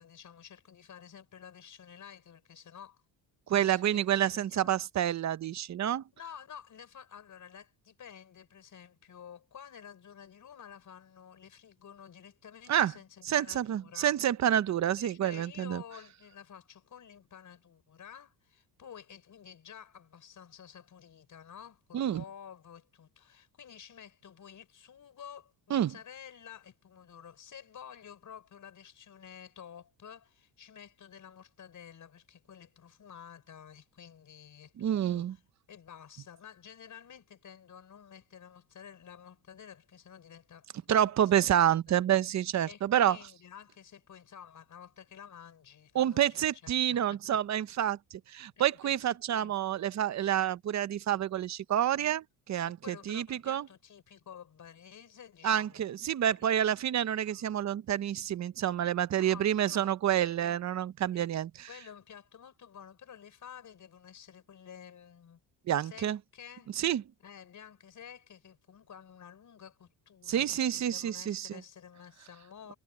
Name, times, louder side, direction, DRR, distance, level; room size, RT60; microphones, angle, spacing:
voice 1, 0.0-3.0 3.5-4.7 6.1-14.2 15.0-35.4 35.7-41.5 41.9-42.0 42.6-46.6 46.9-47.0 48.6-49.5 52.8-55.9 56.3-56.6 57.2-57.5 59.1-59.9 60.2-60.5 61.1-61.3 61.7-65.4 65.8-66.7 67.2-72.7, left 8 dB, 40° left, 4.8 m, -51 dB
voice 2, 3.5-6.0 12.7-12.9 13.2-15.8 21.9-22.2 25.7-25.9 34.8-35.4 40.9-43.2 45.9-53.6 55.4-61.7 65.7-66.2 66.8-67.0 70.3-71.5, right 10 dB, 40° right, 0.7 m, -28 dB
cardioid pair, 145°, 46 cm